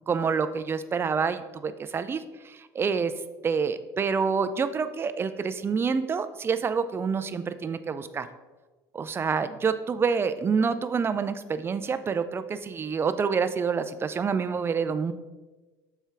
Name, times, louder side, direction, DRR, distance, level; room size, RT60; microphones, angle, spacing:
voice 1, 0.1-3.1 3.4-8.3 8.9-15.1, right 5 dB, 25° right, 12 dB, 0.4 m, -27 dB
7.2 x 4.5 x 3.4 m, 1.2 s
cardioid pair, 115°, 10 cm